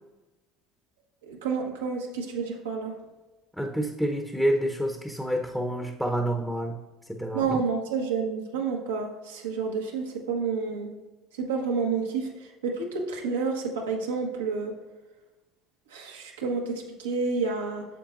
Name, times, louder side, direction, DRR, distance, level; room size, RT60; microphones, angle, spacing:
voice 1, 1.2-2.9 7.3-10.9 11.4-14.7 15.9-17.8, right 5 dB, 85° right, 0 dB, 1.2 m, -29 dB
voice 2, 3.6-6.8 7.1-7.6, equal, ahead, 3 dB, 0.8 m, -28 dB
8.8 x 7.1 x 2.5 m, 1.1 s
hypercardioid pair, 75°, 0 cm